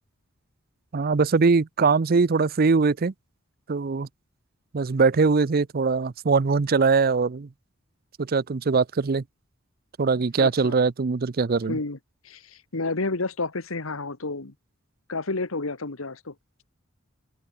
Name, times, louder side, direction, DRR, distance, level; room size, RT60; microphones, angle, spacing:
voice 1, 0.9-3.1 3.7-4.1 4.7-7.5 8.2-9.2 10.0-11.8, right 4 dB, 45° right, 0.5 m, -22 dB
voice 2, 10.4-10.7 11.7-12.0 12.2-14.5 15.1-16.3, left 3 dB, 90° left, 1.7 m, -30 dB
open air
head